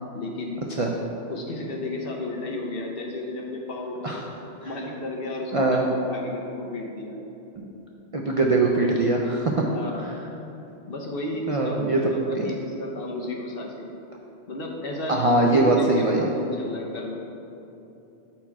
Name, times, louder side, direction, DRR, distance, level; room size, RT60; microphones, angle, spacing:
voice 1, 0.1-0.7 1.3-4.2 4.6-7.2 9.7-10.1 10.9-13.9 14.5-17.1, left 1 dB, 55° left, -1 dB, 1.0 m, -33 dB
voice 2, 5.5-5.8 7.6-7.7 8.1-9.7 11.5-12.5 15.1-16.2, right 2 dB, 55° right, -1 dB, 0.4 m, -22 dB
7.2 x 4.5 x 4.6 m, 3.0 s
omnidirectional pair, 1.2 m